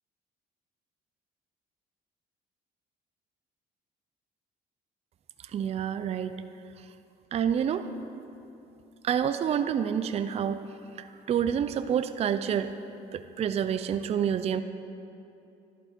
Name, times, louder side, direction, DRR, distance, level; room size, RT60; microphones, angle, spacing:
voice 1, 5.5-6.3 7.3-7.9 9.0-10.6 11.3-12.7 13.1-14.6, right 8 dB, 40° right, 10 dB, 0.4 m, -28 dB
11.5 x 11.0 x 4.4 m, 2.8 s
cardioid pair, 110°, 17 cm